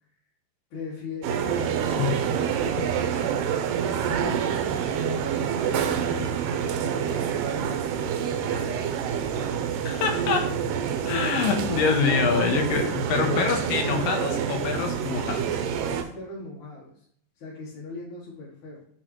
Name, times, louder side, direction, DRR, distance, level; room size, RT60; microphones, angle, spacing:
voice 1, 0.7-1.5 1.8-2.0 2.4-5.4 5.7-9.2 13.1-13.4 13.8-14.1 15.9-17.1 17.4-18.9, left 2 dB, 65° left, -6 dB, 2.7 m, -40 dB
sound 1, 1.2-16.0, right 8 dB, 85° right, 2.2 m, -27 dB
voice 2, 9.8-10.5 11.0-15.6, left 6 dB, 85° left, 4 dB, 2.7 m, -25 dB
6.4 x 5.8 x 3.1 m, 0.66 s
omnidirectional pair, 3.8 m